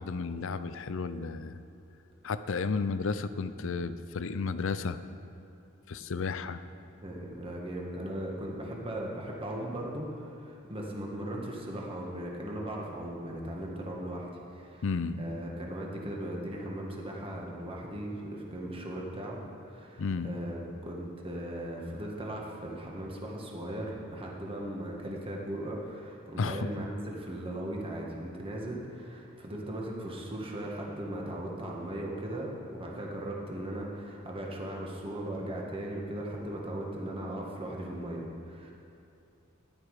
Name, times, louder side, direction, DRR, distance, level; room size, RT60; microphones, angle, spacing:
voice 1, 0.0-1.6 2.2-5.0 5.9-6.6 14.8-15.2 20.0-20.3 26.4-26.7, left 4 dB, 65° left, 12 dB, 0.5 m, -32 dB
voice 2, 7.0-14.9 15.2-19.4 19.7-38.7, right 1 dB, 25° right, -2 dB, 1.6 m, -38 dB
14.0 x 10.5 x 4.9 m, 2.6 s
head